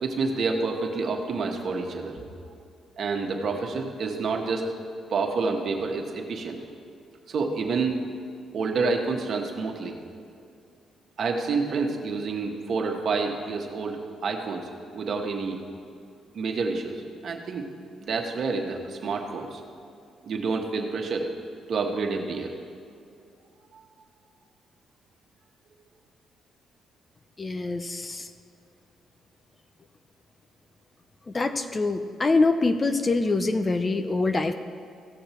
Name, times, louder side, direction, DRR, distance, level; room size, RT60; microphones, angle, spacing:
voice 1, 0.0-2.2 3.0-4.7 5.1-6.6 7.3-8.1 8.5-10.0 11.2-15.6 16.3-17.7 18.0-19.6 20.2-21.3 21.7-22.5 23.7-23.8, right 4 dB, 55° right, 2 dB, 1.4 m, -28 dB
voice 2, 27.4-28.3 31.3-34.5, left 3 dB, 30° left, 9 dB, 0.6 m, -24 dB
16.5 x 6.6 x 4.5 m, 2.5 s
cardioid pair, 90°, 0 cm